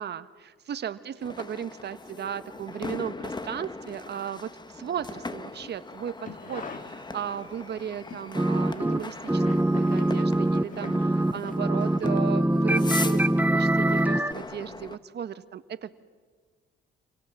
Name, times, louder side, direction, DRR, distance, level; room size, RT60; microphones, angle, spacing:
voice 1, 0.0-15.9, right 9 dB, 60° right, 12 dB, 1.3 m, -36 dB
sound 1, 1.2-15.0, left 3 dB, 20° left, 1.3 m, -40 dB
sound 2, 6.0-7.6 7.9-12.0 12.3-12.4, left 4 dB, 40° left, 2.7 m, -43 dB
sound 3, 8.4-9.0 9.3-14.3, right 1 dB, 10° right, 0.9 m, -23 dB
28.0 x 28.0 x 7.5 m, 1.5 s
cardioid pair, 90°, 20 cm